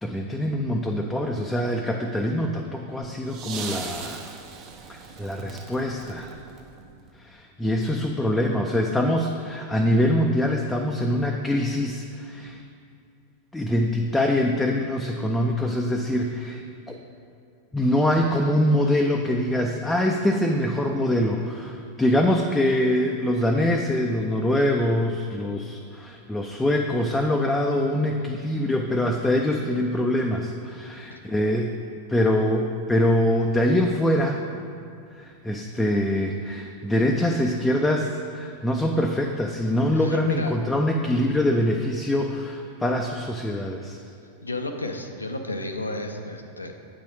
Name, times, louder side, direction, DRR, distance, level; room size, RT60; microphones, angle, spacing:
voice 1, 0.0-4.2 4.9-6.3 7.2-12.6 13.5-16.6 16.9-17.0 17.7-31.7 32.1-34.4 35.1-44.0, left 1 dB, 5° left, 1 dB, 0.4 m, -24 dB
sound 1, 3.3-7.2 8.4-8.5, right 5 dB, 35° right, 0.6 m, -39 dB
voice 2, 40.0-40.6 44.4-46.7, left 1 dB, 80° left, 4 dB, 0.5 m, -32 dB
8.2 x 4.0 x 4.6 m, 2.5 s
figure-of-eight pair, 90°, 0 cm